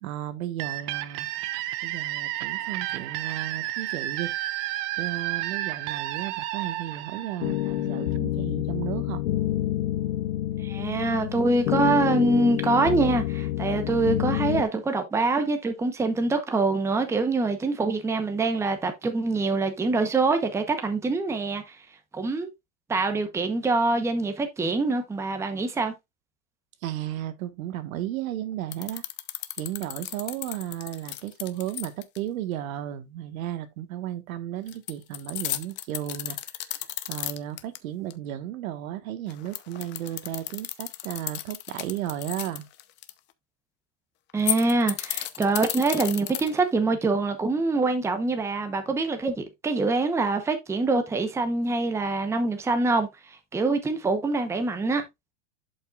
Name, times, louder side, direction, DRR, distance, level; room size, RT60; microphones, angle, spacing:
voice 1, 0.0-1.3 1.8-4.6 5.0-9.2 26.8-29.0 29.6-36.4 36.7-42.7, right 12 dB, 80° right, 1.5 m, -34 dB
sound 1, 0.6-8.2, right 15 dB, 30° right, 0.4 m, -32 dB
sound 2, 7.4-14.6, left 14 dB, 75° left, 1.0 m, -28 dB
voice 2, 10.6-21.8 22.1-22.5 22.9-25.9 44.3-55.0, right 3 dB, 5° right, 0.9 m, -25 dB
sound 3, 28.7-32.2 34.7-37.8 38.1-38.2 39.3-43.1 44.3-46.7, left 14 dB, 25° left, 0.6 m, -33 dB
11.0 x 5.5 x 2.4 m
supercardioid pair, 155°, 41 cm